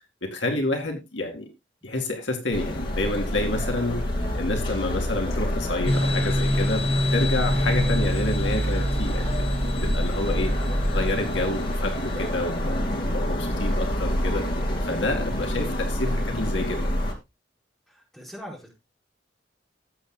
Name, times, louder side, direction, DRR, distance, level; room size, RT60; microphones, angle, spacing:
voice 1, 0.2-1.5 1.8-4.0 4.3-12.8 13.1-14.5 14.8-17.0, left 2 dB, 80° left, 3 dB, 2.2 m, -29 dB
Grønlandsleiret at night (Omni), 2.5-17.1, equal, 55° left, 2.7 m, -27 dB
sound 1, 5.9-12.3, left 1 dB, 35° left, 2.0 m, -28 dB
voice 2, 17.9-18.7, equal, ahead, -2 dB, 4.6 m, -41 dB
18.5 x 7.7 x 2.2 m, 0.22 s
head